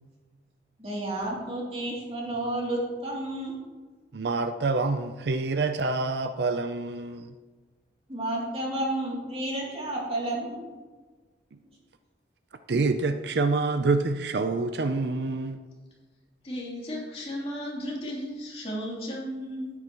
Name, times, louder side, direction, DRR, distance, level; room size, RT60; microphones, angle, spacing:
voice 1, 0.8-3.5 8.1-10.7, right 1 dB, 35° right, -4 dB, 2.8 m, -31 dB
voice 2, 4.1-7.3 11.5-11.6 12.7-15.6, right 3 dB, 60° right, 9 dB, 0.5 m, -27 dB
voice 3, 16.4-19.7, equal, 35° left, -5 dB, 3.1 m, -34 dB
13.0 x 9.8 x 3.0 m, 1.3 s
head